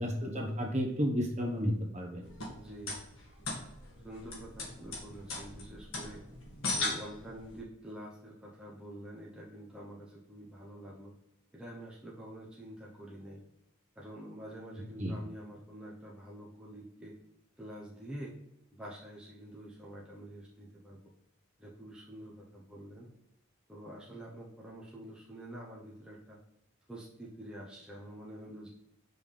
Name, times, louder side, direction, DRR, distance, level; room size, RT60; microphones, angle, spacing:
voice 1, 0.0-2.2 15.0-15.2, equal, 30° right, 0 dB, 1.1 m, -32 dB
sound 1, 2.2-7.6, left 3 dB, 70° left, 1.7 m, -39 dB
voice 2, 2.5-3.0 4.0-6.2 6.7-11.1 11.5-13.4 14.0-17.1 17.6-18.3 18.7-21.0 21.6-23.1 23.7-26.4 26.9-28.7, right 1 dB, 5° right, -6 dB, 0.8 m, -47 dB
5.3 x 3.4 x 5.6 m, 0.83 s
head